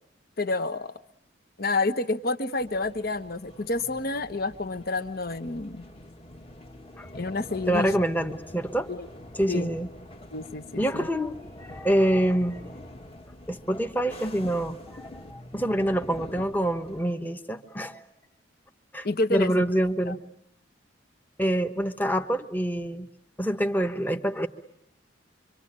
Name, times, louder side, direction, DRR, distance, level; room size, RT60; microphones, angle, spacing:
voice 1, 0.4-0.9 1.6-5.8 7.1-7.9 8.9-9.1 9.5-9.7 10.3-11.1 19.0-19.6 20.1-20.2, left 2 dB, 50° left, 9 dB, 1.2 m, -29 dB
sound 1, 2.6-17.0, left 1 dB, 30° left, 1.6 m, -45 dB
voice 2, 7.7-8.9 9.3-9.9 10.8-11.4 11.6-12.6 13.5-18.0 18.9-20.2 21.4-23.1 23.4-24.5, right 1 dB, 10° left, 6 dB, 1.1 m, -26 dB
26.0 x 25.5 x 8.8 m, 0.74 s
head